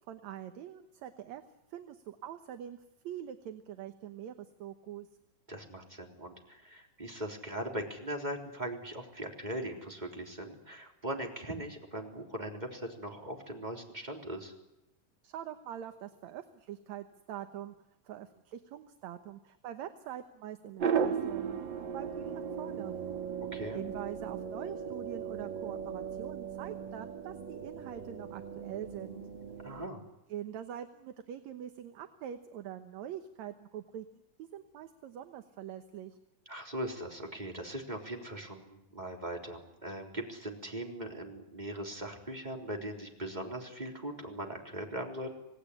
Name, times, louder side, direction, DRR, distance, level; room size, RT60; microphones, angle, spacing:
voice 1, 0.1-1.4 1.7-2.8 3.0-5.1 15.2-17.7 18.1-21.6 21.9-22.9 23.7-29.2 30.3-34.1 34.4-36.2, right 10 dB, 65° right, 8 dB, 2.1 m, -44 dB
voice 2, 5.5-14.5 23.5-23.8 29.6-30.0 36.5-45.3, right 1 dB, 10° right, 2 dB, 3.6 m, -40 dB
sound 1, 20.8-29.9, right 7 dB, 45° right, 1.6 m, -37 dB
27.0 x 18.5 x 10.0 m, 0.92 s
omnidirectional pair, 4.0 m